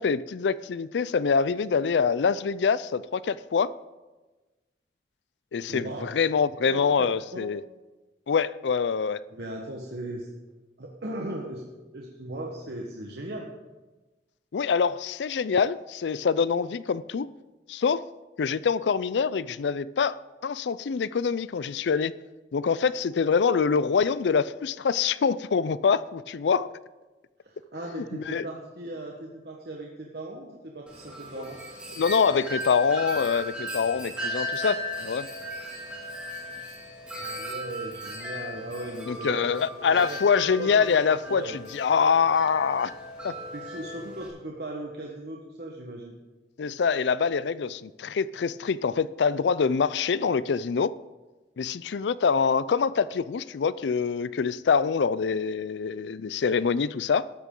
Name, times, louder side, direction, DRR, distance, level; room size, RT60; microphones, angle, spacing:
voice 1, 0.0-3.7 5.5-7.6 8.3-9.2 14.5-17.3 17.7-18.1 18.4-20.2 20.4-22.1 22.5-26.7 28.0-28.5 31.4-31.5 32.0-35.3 39.1-42.9 43.2-43.3 46.6-50.9 51.6-57.3, left 6 dB, 90° left, 0.4 m, -25 dB
voice 2, 5.7-6.1 6.7-7.5 9.3-10.3 10.8-11.6 11.9-13.5 27.4-31.6 37.2-39.6 39.9-40.2 40.6-41.0 41.3-41.6 43.5-46.1, right 1 dB, 70° right, 1.2 m, -38 dB
Wind chime, 30.9-44.3, equal, 5° right, 2.5 m, -37 dB
14.0 x 12.0 x 3.8 m
head